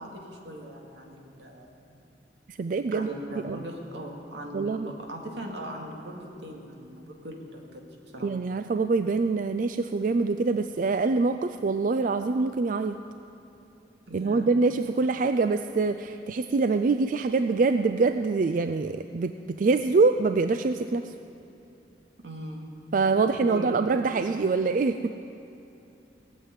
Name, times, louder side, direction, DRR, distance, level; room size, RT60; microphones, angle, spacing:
voice 1, 0.0-2.0 2.9-7.8 8.1-8.3 14.1-14.5 22.2-22.7 23.1-23.8, right 1 dB, 80° right, 1 dB, 2.1 m, -40 dB
voice 2, 2.5-3.6 4.5-4.9 8.2-13.0 14.1-21.1 22.9-25.2, right 4 dB, 50° right, 9 dB, 0.4 m, -25 dB
18.0 x 7.5 x 9.5 m, 2.8 s
head